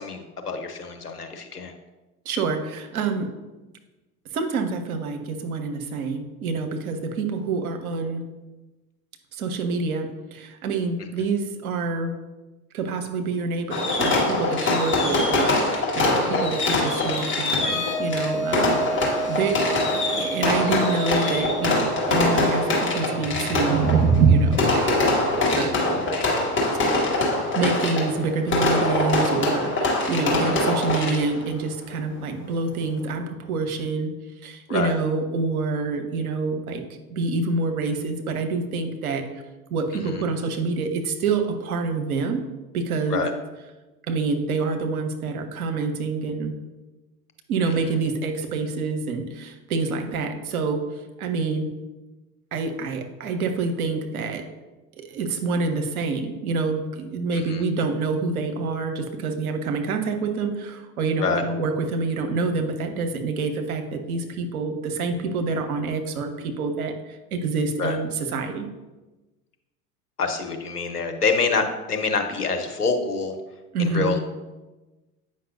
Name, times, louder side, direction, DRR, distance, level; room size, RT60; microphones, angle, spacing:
voice 1, 0.0-1.7 15.0-15.2 18.5-18.7 30.3-30.6 34.7-34.9 39.9-40.2 43.1-43.3 47.6-47.9 57.3-57.6 61.2-61.4 67.8-68.0 70.2-73.4 73.8-74.2, left 4 dB, 90° left, 5 dB, 0.7 m, -27 dB
voice 2, 2.2-3.3 4.3-8.2 9.3-12.1 12.7-26.0 27.5-34.1 34.4-36.8 37.1-39.4 39.7-42.4 42.7-43.3 44.1-46.6 47.5-50.9 51.2-51.7 52.5-54.4 55.0-68.7 73.7-74.1, right 4 dB, 70° right, 6 dB, 0.9 m, -27 dB
Fireworks, 13.7-31.5, left 2 dB, 25° left, 1.6 m, -23 dB
sound 1, 17.6-25.1, right 2 dB, 55° left, 2.0 m, -32 dB
sound 2, 23.1-29.1, right 5 dB, 50° right, 1.2 m, -24 dB
8.4 x 5.3 x 2.6 m, 1.1 s
figure-of-eight pair, 75°, 45 cm